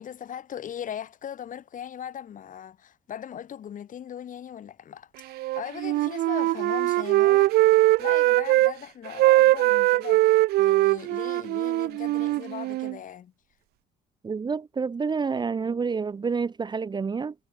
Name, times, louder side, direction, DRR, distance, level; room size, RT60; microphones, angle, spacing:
voice 1, 0.0-7.5 8.0-13.3, left 9 dB, 50° left, 4.8 m, -39 dB
Wind instrument woodwind instrument, 5.3-8.7 9.0-13.0, right 17 dB, 70° right, 0.4 m, -21 dB
voice 2, 14.2-17.3, right 5 dB, 25° right, 1.1 m, -28 dB
cardioid pair, 110°, 17 cm